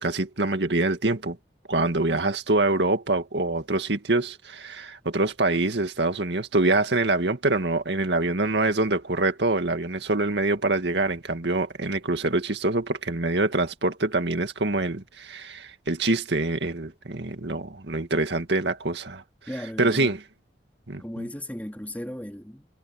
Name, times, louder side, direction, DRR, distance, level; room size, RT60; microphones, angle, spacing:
voice 1, 0.0-1.4 1.7-19.2 19.8-20.2 20.9-21.3, right 2 dB, 75° right, 2.1 m, -25 dB
voice 2, 19.5-20.1 21.0-22.7, equal, 10° left, 2.2 m, -36 dB
head